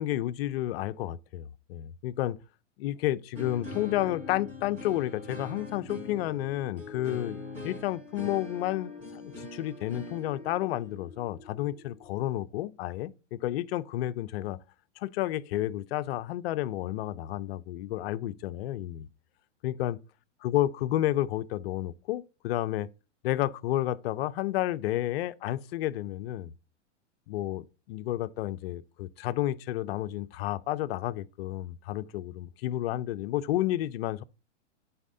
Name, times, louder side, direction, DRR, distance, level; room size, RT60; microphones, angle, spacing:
voice 1, 0.0-2.4 2.8-14.6 15.0-19.1 19.6-20.0 20.4-22.9 23.2-26.5 27.3-34.2, left 14 dB, 55° left, 0.5 m, -31 dB
sound 1, 3.3-12.3, left 2 dB, 20° right, 3.9 m, -42 dB
11.0 x 4.2 x 2.7 m
hypercardioid pair, 125°, 36 cm